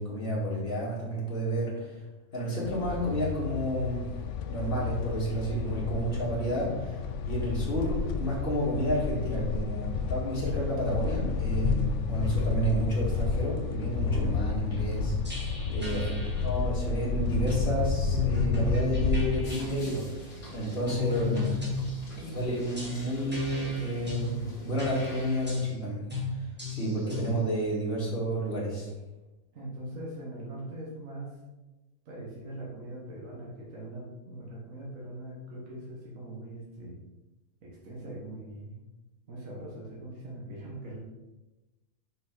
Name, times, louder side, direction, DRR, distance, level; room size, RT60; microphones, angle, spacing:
voice 1, 0.0-2.0 2.3-4.1 4.5-7.0 7.3-16.1 16.4-21.5 22.2-26.0 26.3-28.9, right 1 dB, 40° left, -6 dB, 2.3 m, -31 dB
sound 1, 2.6-19.5, left 5 dB, 65° left, 0.8 m, -31 dB
sound 2, 14.1-14.5 15.3-16.4 17.5-17.7 18.1-19.7 20.9-22.1 22.8-24.3 24.8-25.7 26.1-26.3 26.6-27.3, left 4 dB, 10° right, 1.5 m, -33 dB
voice 2, 15.5-15.9 29.5-31.4 32.0-37.0 37.6-38.7 39.3-41.0, right 1 dB, 65° right, -4 dB, 1.7 m, -41 dB
sound 3, 19.4-25.5, left 1 dB, 90° left, 2.2 m, -45 dB
5.8 x 5.3 x 3.9 m, 1.1 s
omnidirectional pair, 1.5 m